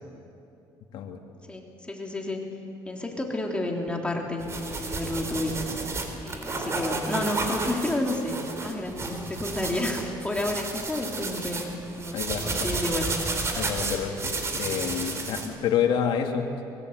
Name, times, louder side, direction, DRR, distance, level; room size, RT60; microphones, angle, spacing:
voice 1, 1.5-2.5 2.9-5.6 6.2-11.6 12.0-13.1, left 1 dB, 10° left, 0 dB, 3.6 m, -30 dB
sound 1, 4.4-15.5, right 3 dB, 35° right, 3.9 m, -32 dB
voice 2, 12.1-12.7 13.5-16.6, left 8 dB, 75° left, 3 dB, 2.9 m, -28 dB
24.0 x 23.0 x 8.3 m, 2.6 s
cardioid pair, 105°, 8 cm